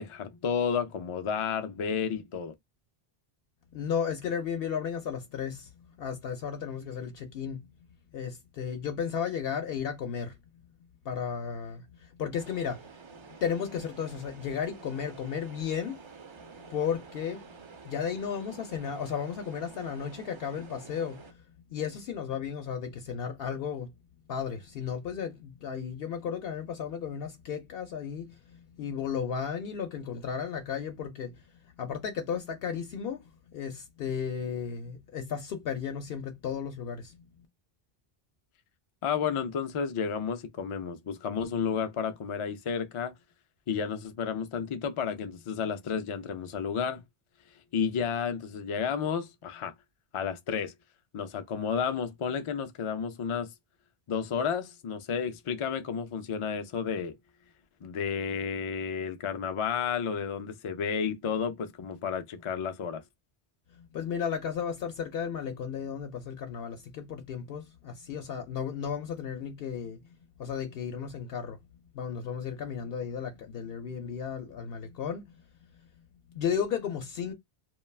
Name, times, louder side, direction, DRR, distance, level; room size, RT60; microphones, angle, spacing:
voice 1, 0.0-2.5 39.0-43.1 43.7-47.0 47.5-49.7 50.1-50.7 51.1-53.5 54.1-57.2 57.8-63.0, left 6 dB, 55° left, 0.3 m, -31 dB
voice 2, 3.7-7.7 8.1-10.4 11.0-12.9 13.4-16.0 16.6-17.6 17.8-21.4 21.7-23.9 24.3-31.4 31.8-37.2 63.8-70.0 70.4-71.6 71.9-75.4 76.3-77.3, left 7 dB, 70° left, 0.7 m, -34 dB
sound 1, 12.3-21.3, right 5 dB, 50° right, 0.3 m, -49 dB
2.3 x 2.2 x 3.2 m
omnidirectional pair, 1.1 m